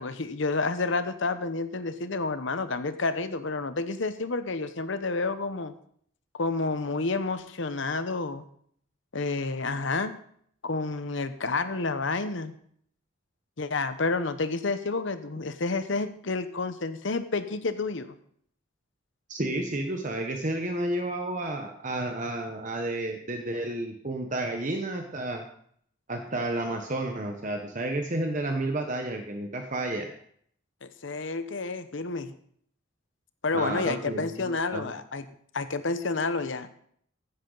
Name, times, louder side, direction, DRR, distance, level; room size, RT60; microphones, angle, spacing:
voice 1, 0.0-5.7 6.3-8.4 9.1-10.1 10.6-12.6 13.6-18.2 30.8-32.3 33.4-35.3 35.5-36.7, left 3 dB, 65° left, 11 dB, 0.9 m, -30 dB
voice 2, 19.3-25.4 26.1-30.1 33.5-34.9, right 1 dB, 40° right, 4 dB, 1.0 m, -31 dB
15.0 x 10.0 x 4.0 m, 0.64 s
head